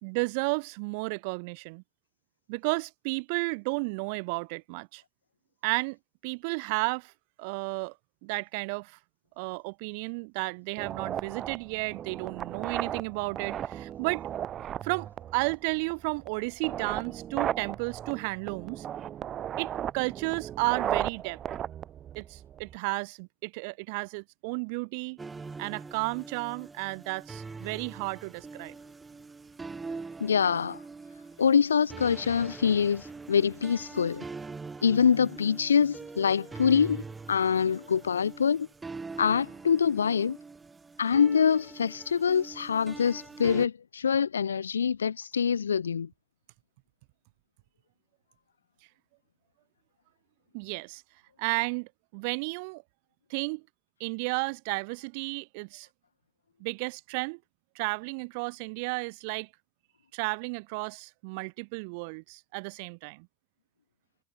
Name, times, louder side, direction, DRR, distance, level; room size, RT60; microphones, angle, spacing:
voice 1, 0.0-1.8 2.5-5.0 5.6-6.0 6.2-7.1 7.4-7.9 8.2-9.0 9.4-14.2 14.8-15.1 15.3-18.9 19.6-21.4 22.1-25.2 25.6-28.8 50.5-51.0 51.4-52.8 53.3-53.6 54.0-55.9 56.6-57.4 57.7-59.5 60.1-63.3, right 32 dB, 60° right, 3.0 m, -33 dB
sound 1, 10.8-22.8, right 10 dB, 40° right, 4.7 m, -36 dB
sound 2, 25.2-43.7, right 4 dB, 20° right, 3.0 m, -43 dB
voice 2, 30.2-30.8 31.4-34.2 34.8-38.7 39.2-40.4 41.0-46.1, left 7 dB, 80° left, 1.0 m, -25 dB
figure-of-eight pair, 65°, 0 cm